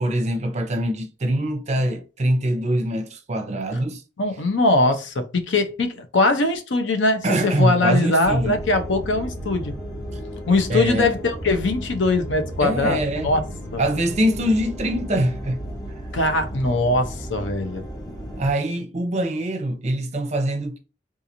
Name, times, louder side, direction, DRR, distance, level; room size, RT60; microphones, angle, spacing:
voice 1, 0.0-4.0 7.2-8.6 10.1-10.2 10.7-11.1 12.6-13.3 13.8-16.1 18.4-20.8, right 1 dB, 35° right, 0.6 m, -23 dB
voice 2, 4.2-9.7 10.5-13.0 13.2-13.4 13.7-13.8 16.1-17.9, left 2 dB, 75° left, 0.6 m, -21 dB
sound 1, 8.2-18.5, equal, 20° left, 0.7 m, -34 dB
3.7 x 2.9 x 2.6 m
head